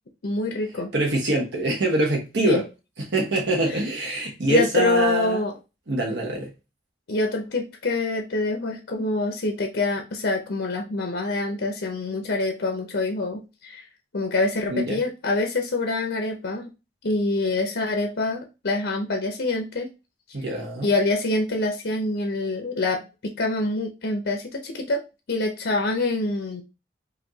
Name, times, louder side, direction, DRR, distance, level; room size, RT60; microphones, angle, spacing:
voice 1, 0.2-0.9 2.4-2.6 3.7-3.8 4.5-5.5 7.1-13.9 14.1-16.7 17.0-19.9 20.8-25.0 25.3-26.6, left 2 dB, 80° left, 3 dB, 0.7 m, -25 dB
voice 2, 0.9-2.6 3.0-5.4 5.9-6.5 14.7-15.0 20.3-20.9, right 1 dB, 80° right, -2 dB, 1.0 m, -24 dB
5.0 x 2.6 x 2.7 m, 0.28 s
head